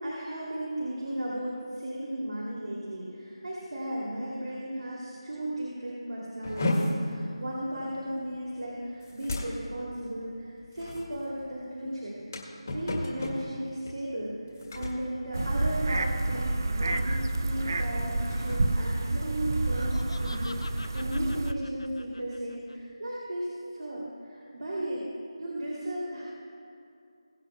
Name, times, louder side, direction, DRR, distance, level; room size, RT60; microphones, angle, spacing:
voice 1, 0.0-25.0 25.4-26.2, right 1 dB, 80° right, -5 dB, 2.8 m, -35 dB
sound 1, 6.4-16.1 16.3-16.7 17.1-17.3 17.9-19.8, left 1 dB, 35° left, 1.7 m, -35 dB
sound 2, 15.3-21.5, right 2 dB, 40° right, 0.5 m, -29 dB
Laughter, 19.5-22.7, left 3 dB, 55° left, 0.5 m, -46 dB
21.5 x 9.1 x 2.3 m, 2.5 s
figure-of-eight pair, 175°, 3 cm